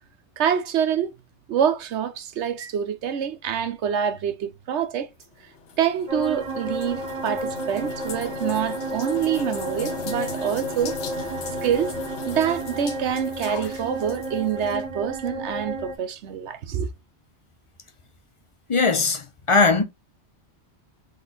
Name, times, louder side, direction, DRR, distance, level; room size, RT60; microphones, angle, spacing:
voice 1, 0.4-1.1 1.5-5.1 5.8-11.0 11.6-12.0 12.2-16.9, right 8 dB, 80° right, 1.0 m, -26 dB
sound 1, 5.2-14.8, left 5 dB, 80° left, 1.1 m, -38 dB
sound 2, 6.1-16.0, right 1 dB, 40° right, 1.1 m, -32 dB
voice 2, 18.7-19.8, left 4 dB, 40° left, 0.5 m, -20 dB
4.0 x 3.2 x 3.9 m
omnidirectional pair, 1.2 m